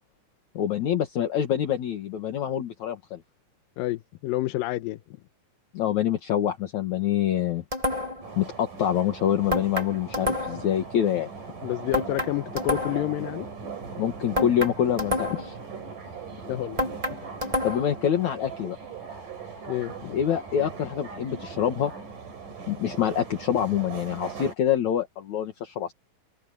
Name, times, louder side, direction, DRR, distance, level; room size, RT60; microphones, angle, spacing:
voice 1, 0.5-3.2 5.7-7.6 8.4-11.3 14.0-15.3 17.6-18.8 20.1-21.9 22.7-25.9, left 10 dB, 60° left, 2.9 m, -26 dB
voice 2, 3.8-5.0 11.6-13.5 15.3-15.4 16.5-16.8 19.7-20.2, left 16 dB, 90° left, 2.5 m, -29 dB
sound 1, 7.7-8.3 9.5-10.7 11.9-13.1 14.3-15.6 16.8-18.0, left 1 dB, 20° right, 1.3 m, -29 dB
sound 2, 8.2-24.6, right 5 dB, 70° right, 6.0 m, -40 dB
omnidirectional pair, 3.9 m